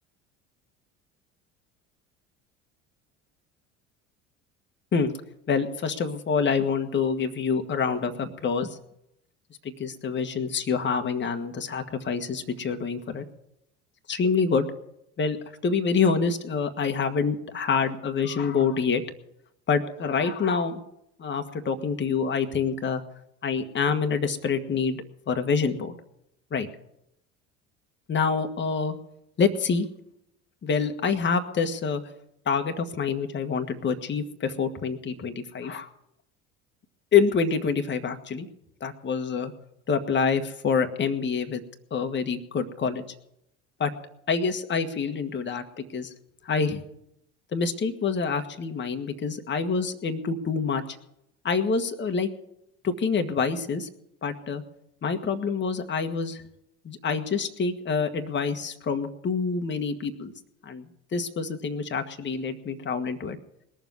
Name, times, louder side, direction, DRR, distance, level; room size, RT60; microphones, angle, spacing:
voice 1, 5.5-8.7 9.8-13.2 14.1-14.7 15.2-15.4 15.6-19.0 19.7-20.8 21.2-23.0 23.4-25.9 26.5-26.7 28.1-28.9 29.4-29.9 30.6-32.0 32.4-35.9 37.1-38.5 38.8-39.5 39.9-41.6 41.9-43.0 43.8-43.9 44.3-46.1 46.4-46.8 47.5-50.8 51.4-52.3 52.8-53.9 54.2-54.6 55.0-56.4 56.8-60.3 60.6-60.8 61.1-63.4, left 5 dB, 30° left, 7 dB, 1.6 m, -26 dB
20.5 x 7.2 x 9.5 m, 0.82 s
hypercardioid pair, 65°, 37 cm